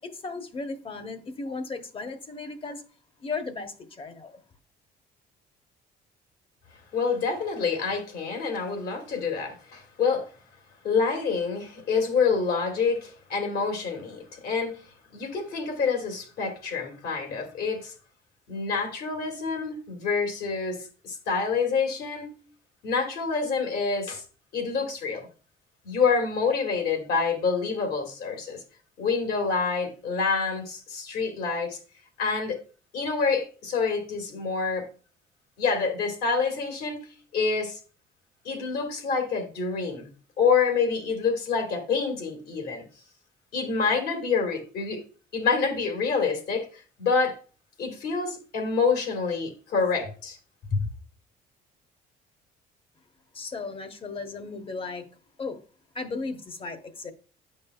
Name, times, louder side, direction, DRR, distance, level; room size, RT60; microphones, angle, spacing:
voice 1, 0.0-2.8 3.2-4.4 53.3-55.1 55.4-55.6 55.9-57.1, left 3 dB, 30° left, 1.0 m, -35 dB
voice 2, 6.9-10.2 10.8-14.8 15.1-17.9 18.5-22.3 22.8-24.2 24.5-25.3 25.8-28.6 29.0-31.8 32.2-32.6 32.9-34.9 35.6-37.1 37.3-37.8 38.4-40.1 40.4-42.8 43.5-45.0 45.3-47.4 47.8-50.4 50.7-50.9, left 5 dB, 70° left, 2.2 m, -27 dB
9.1 x 5.3 x 2.3 m
cardioid pair, 110°, 17 cm